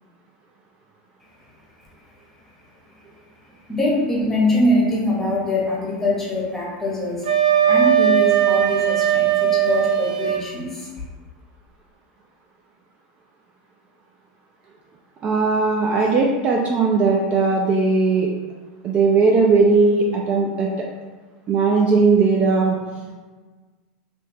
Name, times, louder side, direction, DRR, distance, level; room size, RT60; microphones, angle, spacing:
voice 1, 3.7-7.3 7.7-10.9, left 1 dB, 5° left, -5 dB, 1.0 m, -23 dB
Wind instrument woodwind instrument, 7.2-10.4, right 10 dB, 80° right, 0.8 m, -18 dB
voice 2, 15.2-18.3 18.8-20.7 21.5-22.8, right 4 dB, 30° right, -1 dB, 0.4 m, -18 dB
3.3 x 2.8 x 3.0 m, 1.4 s
supercardioid pair, 140°, 4 cm